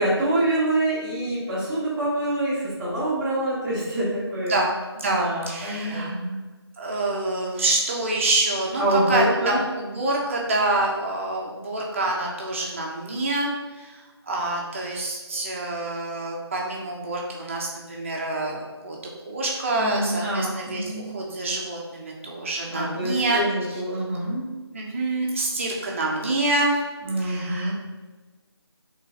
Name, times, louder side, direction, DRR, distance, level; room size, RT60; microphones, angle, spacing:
voice 1, 0.0-4.5 5.0-6.4 8.8-9.6 19.7-21.1 22.7-24.5 27.0-27.7, right 1 dB, 5° right, -11 dB, 1.2 m, -26 dB
voice 2, 4.5-6.1 6.8-19.0 19.2-23.4 23.7-23.8 24.7-26.8 27.2-27.7, right 2 dB, 30° right, -2 dB, 1.1 m, -27 dB
8.8 x 3.8 x 3.0 m, 1.3 s
figure-of-eight pair, 165°, 14 cm